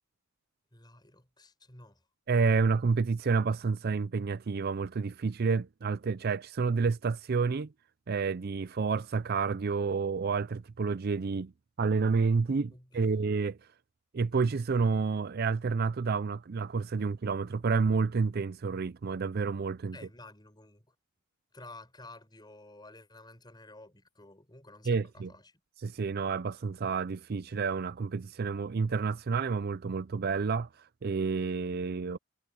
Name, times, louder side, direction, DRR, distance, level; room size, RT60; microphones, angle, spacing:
voice 1, 0.7-2.0 12.7-13.4 17.0-17.1 19.9-20.9 21.5-25.6, left 2 dB, 20° left, 6.7 m, -52 dB
voice 2, 2.3-7.7 8.1-11.5 11.8-13.6 14.1-20.0 24.9-25.3 25.8-30.7 31.0-32.2, right 4 dB, 45° right, 0.4 m, -29 dB
head